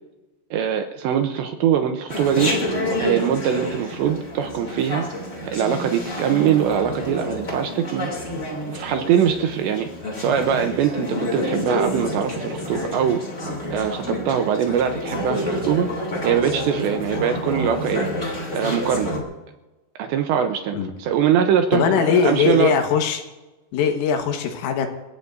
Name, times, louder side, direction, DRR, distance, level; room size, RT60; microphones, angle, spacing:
voice 1, 0.5-2.6 3.0-5.1 5.4-8.1 8.7-9.9 10.2-13.2 13.7-15.9 16.2-18.1 18.5-19.2 20.0-22.7, right 8 dB, 80° right, 5 dB, 2.7 m, -22 dB
Chatter, 2.1-19.2, left 1 dB, 20° left, 2.1 m, -28 dB
voice 2, 21.7-23.2 23.7-24.9, left 6 dB, 80° left, 4 dB, 4.1 m, -20 dB
29.5 x 15.5 x 2.7 m, 1.1 s
omnidirectional pair, 5.9 m